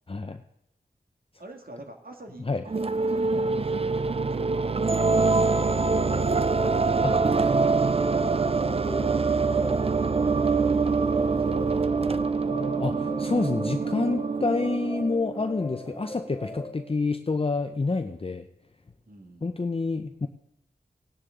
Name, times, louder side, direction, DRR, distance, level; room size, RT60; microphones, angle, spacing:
voice 1, 0.1-0.4 2.5-2.6 7.0-7.1 12.8-18.5 19.4-20.3, left 3 dB, 35° left, 7 dB, 0.6 m, -28 dB
voice 2, 1.4-7.1 19.0-19.6, right 2 dB, 60° right, 4 dB, 1.8 m, -47 dB
sound 1, 2.7-15.6, right 4 dB, 35° right, 0.4 m, -25 dB
sound 2, 4.9-16.8, left 2 dB, 10° left, 2.5 m, -40 dB
18.0 x 9.8 x 3.7 m, 0.84 s
wide cardioid pair, 60°, 17 cm